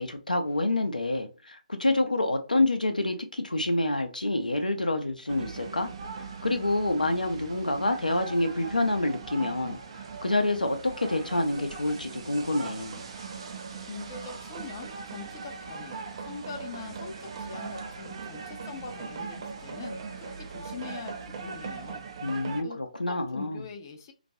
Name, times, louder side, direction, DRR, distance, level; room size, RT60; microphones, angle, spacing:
voice 1, 0.0-5.9 6.4-9.8 10.2-13.0 22.2-23.6, left 2 dB, 80° left, 0.5 m, -27 dB
sound 1, 5.3-22.6, right 5 dB, 40° right, 0.4 m, -40 dB
voice 2, 13.8-22.0 22.6-22.8 23.1-24.1, left 5 dB, 30° left, 0.5 m, -43 dB
2.3 x 2.2 x 2.7 m
figure-of-eight pair, 140°, 4 cm